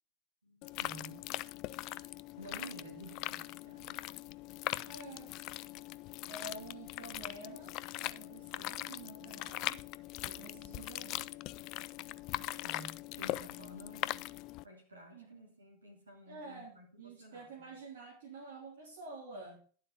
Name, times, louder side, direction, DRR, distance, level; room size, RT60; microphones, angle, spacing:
voice 1, 0.4-1.3 2.0-4.1 12.6-14.2 14.6-17.7, right 1 dB, 75° right, 2.6 m, -52 dB
sound 1, 0.6-14.6, left 18 dB, 40° left, 0.3 m, -41 dB
voice 2, 4.8-5.4 6.3-9.8 10.2-11.3 15.1-15.3 16.3-19.6, right 3 dB, 55° right, 3.3 m, -49 dB
11.5 x 7.6 x 4.2 m
figure-of-eight pair, 90°, 0 cm